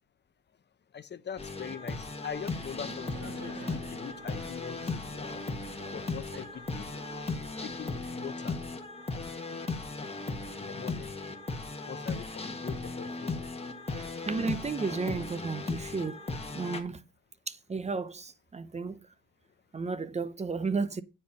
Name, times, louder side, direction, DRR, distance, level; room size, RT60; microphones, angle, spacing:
voice 1, 0.9-5.4 5.9-6.9 7.6-8.6 10.5-11.1 11.9-13.3, left 7 dB, 35° left, 0.6 m, -42 dB
sound 1, 1.4-16.8, left 3 dB, 20° left, 1.3 m, -37 dB
Laughter, 2.3-8.1, right 5 dB, 50° right, 1.9 m, -50 dB
voice 2, 13.9-16.2 16.5-17.0 17.5-19.1 19.7-21.0, right 4 dB, 20° right, 0.6 m, -33 dB
9.2 x 4.4 x 5.3 m
cardioid pair, 90°, 30 cm